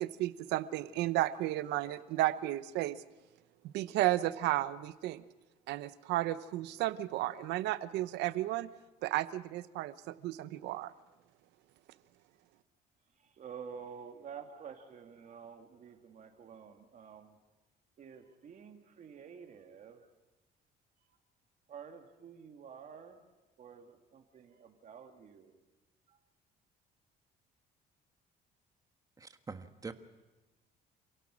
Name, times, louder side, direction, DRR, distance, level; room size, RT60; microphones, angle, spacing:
voice 1, 0.0-3.0 3.6-5.2 5.7-8.7 9.0-10.9, right 15 dB, 85° right, 15 dB, 0.9 m, -33 dB
voice 2, 13.2-17.4 18.0-20.1 21.1-21.2 21.7-23.2 23.6-25.5 26.1-26.2, right 7 dB, 50° right, 4 dB, 2.3 m, -50 dB
voice 3, 29.2-29.9, right 4 dB, 20° right, 8 dB, 1.4 m, -44 dB
27.5 x 17.0 x 6.3 m, 1.1 s
cardioid pair, 110°, 17 cm